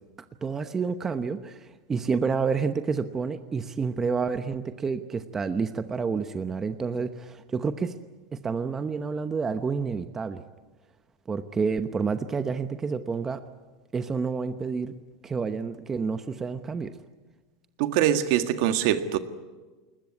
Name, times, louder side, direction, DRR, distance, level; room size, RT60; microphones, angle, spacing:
voice 1, 0.4-7.9 8.3-10.4 11.3-13.4 13.9-14.9 15.2-16.9, right 5 dB, 20° right, 10 dB, 0.9 m, -29 dB
voice 2, 17.8-19.2, right 11 dB, 65° right, 9 dB, 1.7 m, -23 dB
21.0 x 20.5 x 9.7 m, 1.3 s
supercardioid pair, 130°, 2 cm